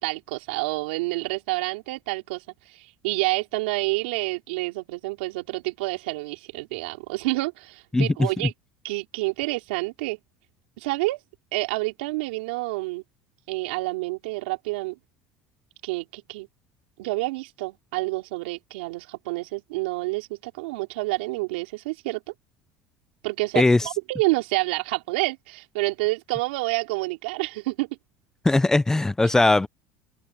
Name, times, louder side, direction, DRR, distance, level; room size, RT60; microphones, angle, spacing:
voice 1, 0.0-2.4 2.7-8.5 8.8-10.2 10.8-11.2 11.5-13.0 13.5-15.0 15.8-16.5 17.0-22.2 23.2-27.9 29.2-29.3, right 23 dB, 90° right, 4.5 m, -28 dB
voice 2, 7.9-8.3 23.6-23.8 28.4-29.7, left 2 dB, 10° left, 0.6 m, -19 dB
supercardioid pair, 110°, 5 cm